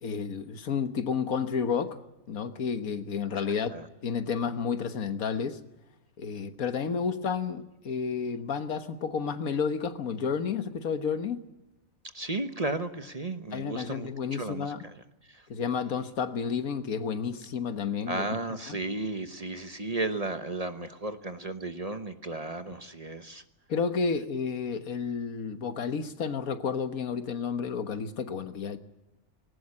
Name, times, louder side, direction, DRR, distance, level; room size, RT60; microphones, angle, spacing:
voice 1, 0.0-2.0 2.3-3.8 4.0-5.6 6.2-11.4 13.5-14.9 15.5-18.3 23.7-28.8, left 6 dB, 85° left, 10 dB, 1.7 m, -31 dB
voice 2, 3.4-3.9 12.1-15.5 18.1-23.4, right 2 dB, 30° right, 9 dB, 1.1 m, -34 dB
19.5 x 18.5 x 9.8 m, 0.93 s
omnidirectional pair, 1.4 m